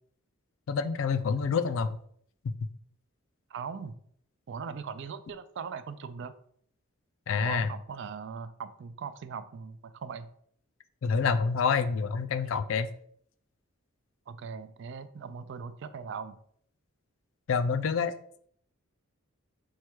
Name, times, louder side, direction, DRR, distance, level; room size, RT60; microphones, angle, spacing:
voice 1, 0.7-2.0 2.4-2.5 7.3-7.7 11.0-12.9 17.5-18.1, left 5 dB, 65° left, 11 dB, 0.4 m, -27 dB
voice 2, 3.5-4.0 4.5-6.3 7.4-10.3 14.3-16.4, right 6 dB, 60° right, 12 dB, 0.3 m, -40 dB
4.6 x 2.3 x 4.4 m, 0.64 s
head